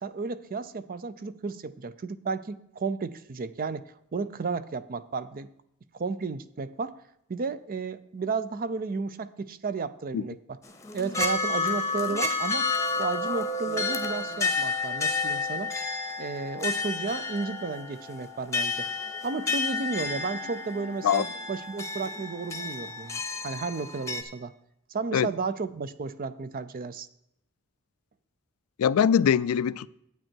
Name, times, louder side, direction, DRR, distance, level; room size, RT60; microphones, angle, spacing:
voice 1, 0.0-5.5 5.9-7.0 7.3-10.6 10.9-12.7 13.0-15.7 16.2-18.9 19.2-24.5 24.9-27.1, right 4 dB, 40° right, 0.5 m, -33 dB
sound 1, 10.7-24.2, left 3 dB, 15° left, 0.9 m, -31 dB
voice 2, 28.8-29.9, left 8 dB, 75° left, 0.3 m, -22 dB
9.2 x 8.8 x 4.5 m
head